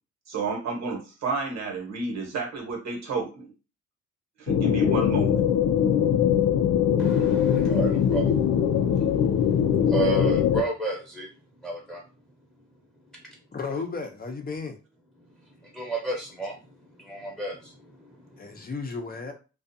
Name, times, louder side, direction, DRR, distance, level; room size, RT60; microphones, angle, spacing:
voice 1, 0.3-3.5 4.4-5.4, right 4 dB, 60° right, 1.2 m, -31 dB
sound 1, 4.5-10.6, left 8 dB, 70° left, 0.4 m, -22 dB
voice 2, 7.0-12.0 13.1-13.4 15.2-18.7, right 3 dB, ahead, 0.9 m, -33 dB
voice 3, 13.5-14.8 18.4-19.3, left 4 dB, 30° left, 0.6 m, -34 dB
2.4 x 2.3 x 2.6 m
cardioid pair, 90°, 30 cm